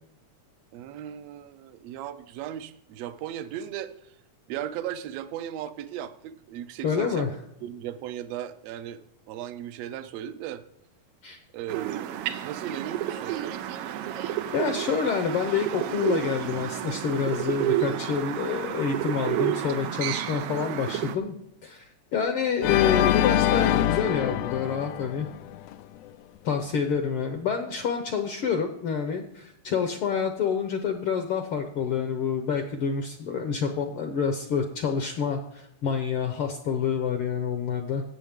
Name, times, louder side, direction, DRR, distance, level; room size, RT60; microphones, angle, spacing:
voice 1, 0.7-4.1 4.5-7.3 7.6-10.6 11.5-13.3, right 10 dB, 75° right, 11 dB, 1.6 m, -37 dB
voice 2, 6.8-7.3 11.2-11.4 14.5-21.3 21.6-25.3 26.4-38.0, left 6 dB, 70° left, 5 dB, 1.4 m, -28 dB
sound 1, 11.7-21.2, right 11 dB, 90° right, 1.3 m, -30 dB
Organ, 22.6-25.7, left 12 dB, 85° left, 1.4 m, -24 dB
16.5 x 7.3 x 3.6 m, 0.75 s
omnidirectional pair, 3.4 m